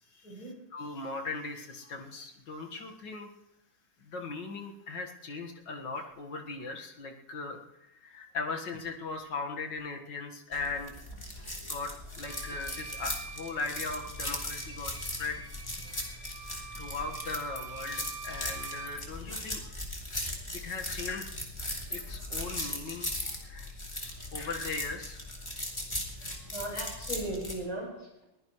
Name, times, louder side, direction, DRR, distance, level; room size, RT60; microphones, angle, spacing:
voice 1, 0.1-3.3 4.0-10.9 11.4-15.5 15.9-16.2 16.7-19.8 20.6-21.3 21.9-23.7 24.3-25.2, left 3 dB, 65° left, 3 dB, 2.3 m, -39 dB
sound 1, 10.5-27.6, left 1 dB, 15° left, 2.7 m, -38 dB
Bowed string instrument, 12.2-19.0, right 5 dB, 30° right, 2.6 m, -45 dB
voice 2, 26.5-28.2, right 1 dB, 45° left, -2 dB, 7.8 m, -37 dB
22.5 x 16.0 x 3.1 m, 0.91 s
omnidirectional pair, 2.1 m